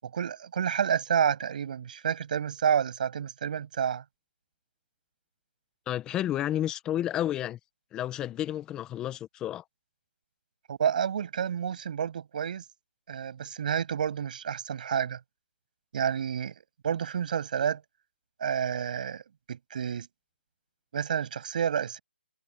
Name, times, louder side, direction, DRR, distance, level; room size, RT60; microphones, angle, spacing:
voice 1, 0.0-4.0 10.7-12.6 13.1-15.2 15.9-16.5 16.8-17.8 18.4-19.2 19.5-20.1 20.9-22.0, right 8 dB, 45° right, 7.7 m, -29 dB
voice 2, 5.9-7.6 7.9-9.6, left 12 dB, 10° left, 1.5 m, -31 dB
hypercardioid pair, 160°, 6 cm